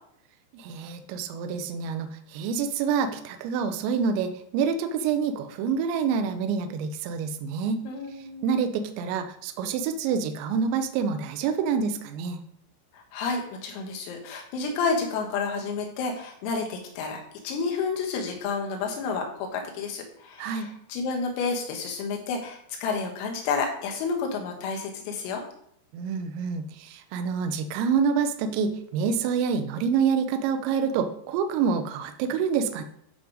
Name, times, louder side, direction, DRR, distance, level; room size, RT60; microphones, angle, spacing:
voice 1, 0.5-7.8 8.4-12.4 20.4-20.7 25.9-32.8, right 6 dB, 90° right, 7 dB, 2.6 m, -27 dB
voice 2, 7.9-8.4 12.9-25.4, left 4 dB, 90° left, 2 dB, 4.0 m, -30 dB
10.0 x 3.9 x 5.0 m, 0.71 s
omnidirectional pair, 6.0 m